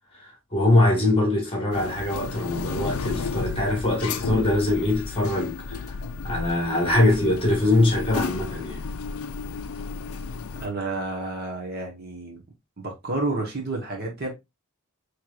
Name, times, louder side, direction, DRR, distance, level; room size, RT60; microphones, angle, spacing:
voice 1, 0.1-6.0 6.2-8.8, left 2 dB, 25° left, 1.5 m, -23 dB
sound 1, 1.7-10.7, left 4 dB, 70° left, 0.4 m, -33 dB
voice 2, 10.6-12.4 12.8-14.3, right 2 dB, 45° right, 1.1 m, -30 dB
4.6 x 3.2 x 2.4 m
head